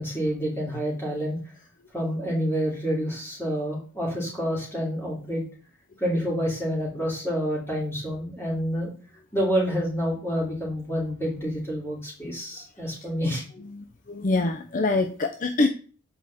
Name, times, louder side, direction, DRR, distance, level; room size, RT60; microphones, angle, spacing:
voice 1, 0.0-1.4 1.9-5.4 6.0-8.9 9.3-13.4, equal, 10° left, -4 dB, 3.2 m, -28 dB
voice 2, 13.8-15.7, left 3 dB, 40° left, 6 dB, 0.5 m, -25 dB
8.3 x 4.9 x 4.2 m, 0.40 s
head